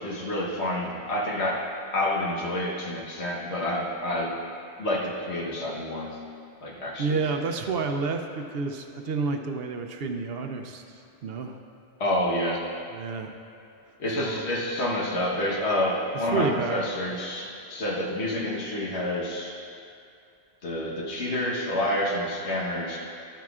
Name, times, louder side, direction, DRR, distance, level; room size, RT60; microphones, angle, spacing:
voice 1, 0.0-1.6 1.9-4.4 4.8-6.2 6.6-7.2 12.0-12.6 14.0-19.5 20.6-23.0, left 1 dB, 85° left, -3 dB, 1.5 m, -28 dB
voice 2, 7.0-11.6 12.9-13.3 14.2-14.5 16.2-16.8, right 4 dB, 70° right, 5 dB, 0.8 m, -30 dB
11.5 x 9.0 x 2.4 m, 2.5 s
omnidirectional pair, 1.1 m